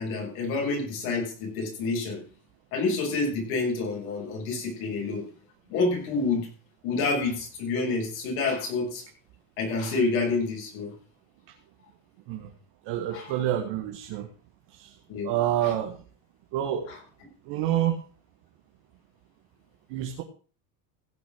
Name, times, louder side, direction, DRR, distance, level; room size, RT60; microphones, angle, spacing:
voice 1, 0.0-2.2 2.7-5.2 5.7-6.5 6.8-9.0 9.6-10.9 13.1-13.3 15.1-15.3 15.6-15.7 16.9-17.0, left 3 dB, 75° left, 0 dB, 6.9 m, -28 dB
voice 2, 12.9-14.3 14.7-15.0 15.2-16.0 16.5-16.9 17.5-18.0 19.9-20.2, right 11 dB, 70° right, 3 dB, 1.9 m, -28 dB
16.0 x 6.2 x 6.3 m, 0.40 s
supercardioid pair, 100°, 44 cm